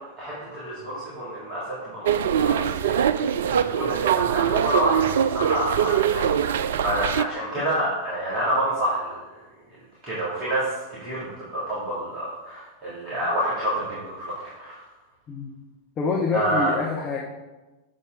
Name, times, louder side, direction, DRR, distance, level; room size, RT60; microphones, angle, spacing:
voice 1, 0.0-6.3 6.8-9.2 10.0-14.8 16.3-16.7, right 1 dB, 35° right, -9 dB, 3.0 m, -28 dB
sound 1, 2.1-7.2, right 9 dB, 60° right, 0.3 m, -23 dB
voice 2, 16.0-17.2, left 4 dB, 30° left, -1 dB, 1.2 m, -26 dB
8.7 x 7.0 x 4.1 m, 1.1 s
figure-of-eight pair, 90°, 0 cm